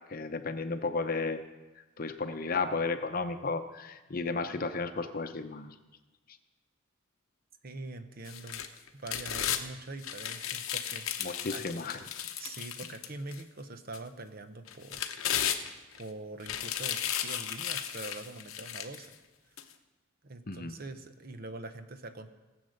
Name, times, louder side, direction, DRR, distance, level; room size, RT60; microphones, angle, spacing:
voice 1, 0.1-1.4 2.0-5.7 11.2-12.0 20.5-20.8, left 3 dB, 45° left, 8 dB, 0.8 m, -33 dB
voice 2, 7.6-8.6 8.9-11.6 12.4-15.1 16.0-19.1 20.2-22.3, right 2 dB, 45° right, 9 dB, 0.9 m, -44 dB
sound 1, 8.3-9.6 10.0-13.4 13.9-14.0 14.7-16.0 16.4-19.1 19.6-19.7, left 10 dB, 90° left, 0.9 m, -35 dB
18.0 x 7.9 x 6.5 m, 1.2 s
head